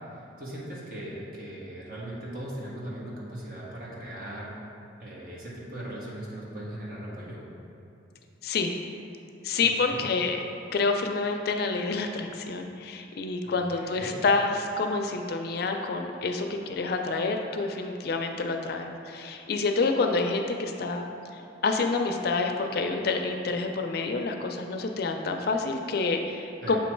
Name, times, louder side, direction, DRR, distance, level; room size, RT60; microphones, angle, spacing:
voice 1, 0.4-4.6 5.0-7.4 9.8-10.0 13.4-14.1 26.6-26.8, right 1 dB, 50° right, -6 dB, 1.3 m, -39 dB
voice 2, 8.4-8.7 9.4-10.4 10.7-21.1 21.6-26.8, left 3 dB, 55° left, 4 dB, 0.4 m, -28 dB
7.3 x 3.1 x 4.4 m, 2.7 s
head